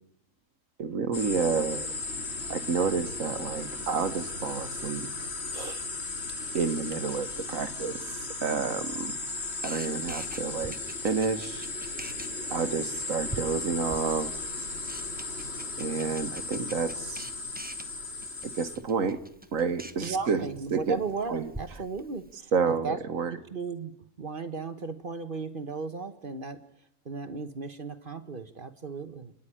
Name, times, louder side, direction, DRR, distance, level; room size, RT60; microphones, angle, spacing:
voice 1, 0.8-1.9 2.5-5.1 5.5-5.9 6.5-9.1 9.6-10.7 11.0-11.7 12.5-14.5 15.8-17.3 18.4-19.2 19.5-21.0 21.3-21.5 22.5-23.4, right 5 dB, 90° right, 1.7 m, -30 dB
sound 1, 1.1-18.8, left 3 dB, 55° left, 2.3 m, -36 dB
Camera, 8.7-22.4, right 2 dB, 10° right, 1.0 m, -47 dB
voice 2, 20.0-23.0 23.3-23.9 24.2-26.6 27.0-29.3, right 4 dB, 45° right, 1.2 m, -36 dB
30.0 x 10.5 x 10.0 m
omnidirectional pair, 1.4 m